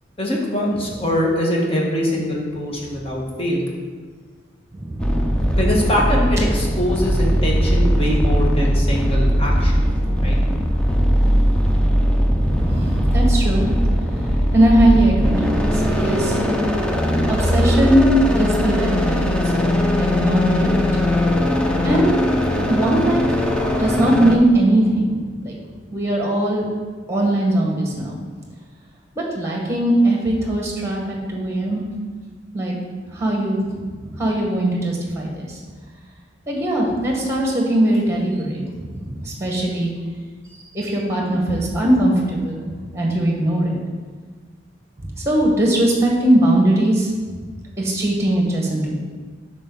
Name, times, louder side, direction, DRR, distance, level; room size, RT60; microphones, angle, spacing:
voice 1, 0.2-3.6 5.5-10.4, left 1 dB, 30° left, -2 dB, 1.5 m, -23 dB
voice 2, 4.7-5.4 8.9-9.6 9.9-10.2 12.2-13.7 14.5-16.4 17.3-19.7 20.0-20.8 21.8-22.1 22.5-25.2 25.4-25.5 25.9-26.7 27.1-28.2 29.1-31.8 32.5-32.7 33.1-33.6 34.0-35.6 36.5-39.9 40.5-42.6 42.9-43.8 45.0-47.1 47.8-49.0, right 1 dB, 15° right, -1 dB, 1.5 m, -20 dB
sound 1, 5.0-24.4, equal, 5° left, 0.6 m, -19 dB
9.2 x 6.2 x 4.0 m, 1.5 s
head